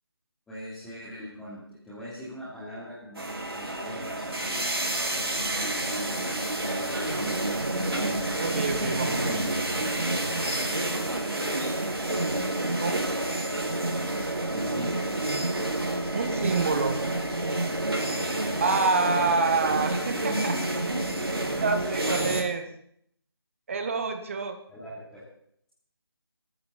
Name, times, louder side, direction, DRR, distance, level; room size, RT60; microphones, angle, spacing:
voice 1, 0.5-4.7 5.6-7.4 9.1-9.6 14.5-15.1 24.7-25.2, equal, 5° left, -11 dB, 3.1 m, -41 dB
sound 1, 3.2-22.4, right 1 dB, 70° right, 4.2 m, -29 dB
Engine, 3.9-11.7, equal, 80° left, 6.6 m, -47 dB
voice 2, 8.4-9.4 12.8-13.1 16.1-17.0 18.6-20.5 21.6-22.6 23.7-24.6, right 4 dB, 30° right, 6 dB, 1.7 m, -27 dB
21.0 x 14.5 x 4.2 m, 0.68 s
figure-of-eight pair, 155°, 13 cm